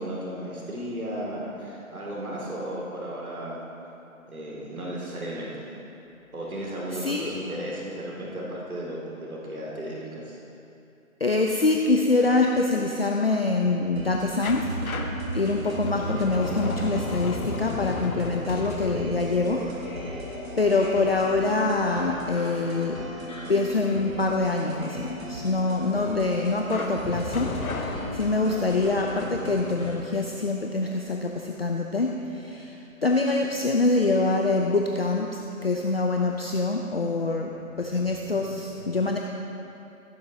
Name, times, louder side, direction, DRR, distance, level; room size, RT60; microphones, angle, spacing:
voice 1, 0.0-3.6 4.3-5.5 6.3-10.4, right 1 dB, 90° right, -5 dB, 2.5 m, -34 dB
voice 2, 6.9-7.3 11.2-14.7 15.3-19.7 20.0-20.2 20.6-23.1 23.5-39.2, left 3 dB, 45° left, 1 dB, 0.5 m, -25 dB
sound 1, 13.9-29.9, equal, 70° right, 2.2 m, -39 dB
sound 2, 14.4-21.2 26.7-28.9, left 4 dB, 80° left, 1.1 m, -36 dB
sound 3, 14.5-30.6 30.9-31.0, equal, 30° left, 2.4 m, -39 dB
15.5 x 9.1 x 2.8 m, 2.8 s
hypercardioid pair, 175°, 42 cm